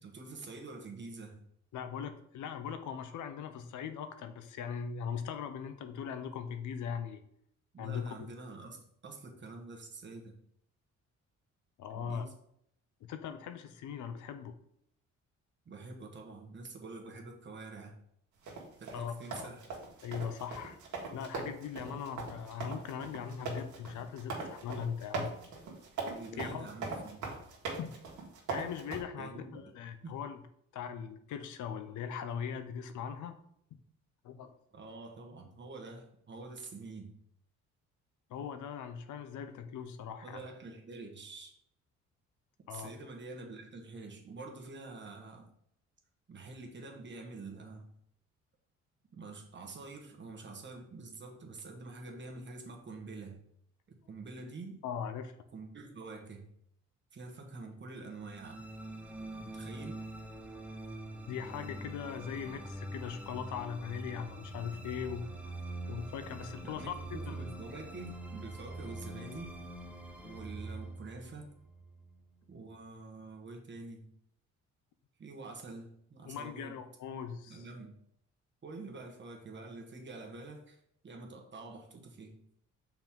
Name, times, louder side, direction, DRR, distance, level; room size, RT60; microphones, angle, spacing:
voice 1, 0.0-1.4 7.7-10.3 12.0-12.3 15.6-18.0 18.8-19.6 26.1-27.2 29.2-29.7 30.0-30.1 34.7-37.2 40.2-41.6 42.7-45.5 46.3-47.9 49.1-53.4 54.1-54.8 55.5-56.5 57.1-58.6 59.4-60.0 66.6-69.5 70.2-71.5 72.5-74.1 75.2-76.8 77.5-77.9 78.6-82.4, right 3 dB, 40° right, 1 dB, 1.3 m, -46 dB
voice 2, 1.7-7.2 7.8-8.0 11.8-12.3 13.0-14.5 18.9-19.5 20.0-20.8 21.1-25.3 26.4-26.7 27.8-27.9 28.5-30.4 30.7-33.4 34.2-34.5 38.3-40.4 42.7-42.9 54.8-55.3 61.2-65.3 65.9-67.5 76.3-77.6, left 7 dB, 75° left, 9 dB, 0.7 m, -40 dB
sound 1, 18.5-29.0, right 4 dB, 75° right, 1.7 m, -40 dB
sound 2, 58.1-72.5, right 1 dB, 5° right, 0.8 m, -44 dB
5.7 x 4.4 x 3.7 m, 0.71 s
cardioid pair, 90°, 30 cm